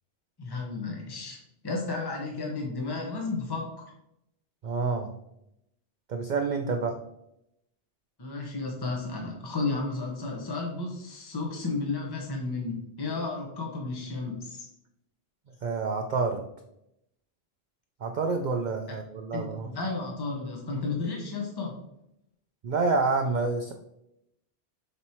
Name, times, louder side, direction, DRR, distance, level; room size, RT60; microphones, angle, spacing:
voice 1, 0.4-3.9 8.2-14.7 19.3-21.8, left 3 dB, 25° left, -1 dB, 1.1 m, -33 dB
voice 2, 4.6-5.1 6.1-7.0 15.6-16.4 18.0-19.7 22.6-23.7, right 4 dB, 55° right, 4 dB, 0.6 m, -28 dB
7.1 x 3.2 x 4.4 m, 0.80 s
omnidirectional pair, 1.1 m